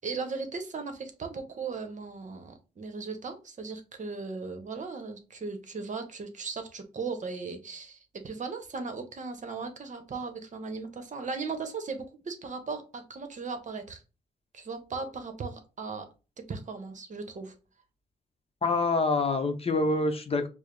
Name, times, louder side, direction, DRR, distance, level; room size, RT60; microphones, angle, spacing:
voice 1, 0.0-14.0 14.5-16.1 16.5-17.5, right 4 dB, 45° right, 7 dB, 0.9 m, -37 dB
voice 2, 18.6-20.5, left 3 dB, 35° left, 7 dB, 0.7 m, -26 dB
4.7 x 2.0 x 3.1 m, 0.32 s
cardioid pair, 75°, 17 cm